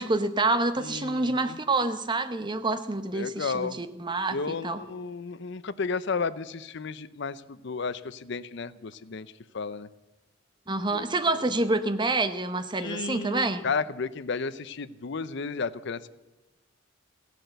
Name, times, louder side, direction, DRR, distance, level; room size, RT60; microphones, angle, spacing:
voice 1, 0.0-4.8 10.7-13.6, right 2 dB, 25° right, 0.9 m, -27 dB
voice 2, 0.8-1.6 3.1-3.8 4.3-9.9 10.9-11.1 12.8-16.1, left 4 dB, 60° left, 0.6 m, -33 dB
16.0 x 10.5 x 7.9 m
head